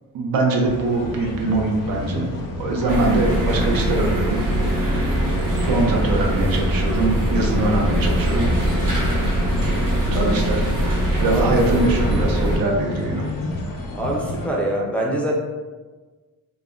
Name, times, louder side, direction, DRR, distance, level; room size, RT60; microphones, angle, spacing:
voice 1, 0.1-2.3 2.6-5.3 5.6-8.5 9.7-9.8 10.1-10.7 11.2-13.3, right 2 dB, 85° right, 1 dB, 0.6 m, -22 dB
sound 1, 0.6-14.5, left 2 dB, 70° left, 0.6 m, -30 dB
sound 2, 2.9-12.6, right 1 dB, 70° right, 0.9 m, -22 dB
voice 2, 14.0-15.3, right 1 dB, 5° left, -3 dB, 0.3 m, -24 dB
2.3 x 2.1 x 3.5 m, 1.3 s
wide cardioid pair, 155°, 34 cm